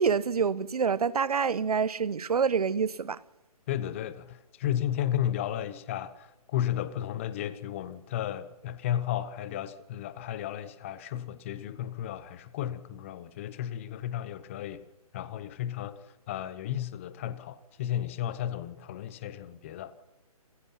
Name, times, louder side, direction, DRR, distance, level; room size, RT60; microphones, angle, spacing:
voice 1, 0.0-3.2, right 6 dB, 80° right, 0.9 m, -27 dB
voice 2, 3.7-14.8 15.1-19.9, left 11 dB, 20° left, 1.0 m, -33 dB
28.0 x 16.0 x 5.8 m
hypercardioid pair, 165°, 19 cm